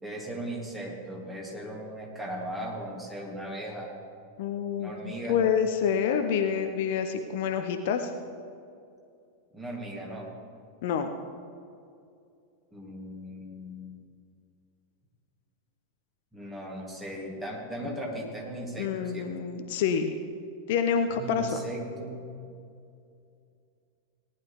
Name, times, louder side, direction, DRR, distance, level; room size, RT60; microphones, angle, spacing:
voice 1, 0.0-3.9 4.8-5.4 9.5-10.3 12.7-14.0 16.3-19.3 21.2-22.2, right 1 dB, 10° right, -2 dB, 2.9 m, -37 dB
voice 2, 4.4-8.1 10.8-11.1 18.8-20.2 20.7-21.6, left 7 dB, 50° left, 7 dB, 0.8 m, -27 dB
18.5 x 11.0 x 3.5 m, 2.4 s
figure-of-eight pair, 90°, 0 cm